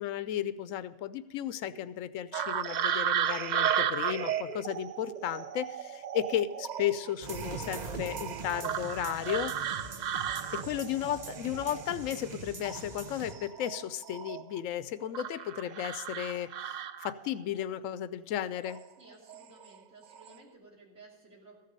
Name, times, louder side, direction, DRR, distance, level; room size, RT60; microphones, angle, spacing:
voice 1, 0.0-9.5 10.5-18.8, left 11 dB, 90° left, 15 dB, 1.0 m, -34 dB
sound 1, 2.3-12.3 12.6-14.6 15.1-17.4 18.6-18.8 19.3-19.8 20.0-20.3, right 8 dB, 80° right, 0.4 m, -34 dB
sound 2, 7.2-13.3, right 4 dB, 35° right, 1.0 m, -42 dB
voice 2, 19.0-21.6, right 3 dB, 60° right, -3 dB, 3.1 m, -55 dB
14.5 x 6.8 x 6.5 m, 1.2 s
omnidirectional pair, 1.3 m